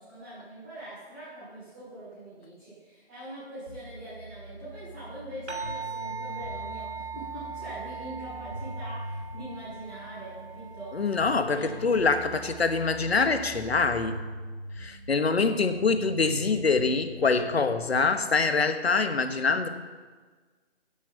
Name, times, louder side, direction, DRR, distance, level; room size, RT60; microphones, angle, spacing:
voice 1, 0.0-10.9 11.5-11.7, right 1 dB, 10° right, -15 dB, 2.5 m, -43 dB
sound 1, 3.7-17.5, right 1 dB, 65° right, 4.6 m, -42 dB
sound 2, 5.5-14.2, right 4 dB, 85° right, 2.8 m, -41 dB
voice 2, 10.9-14.2 14.8-19.7, left 4 dB, 70° left, 9 dB, 1.2 m, -25 dB
10.0 x 7.3 x 7.9 m, 1.4 s
hypercardioid pair, 180°, 33 cm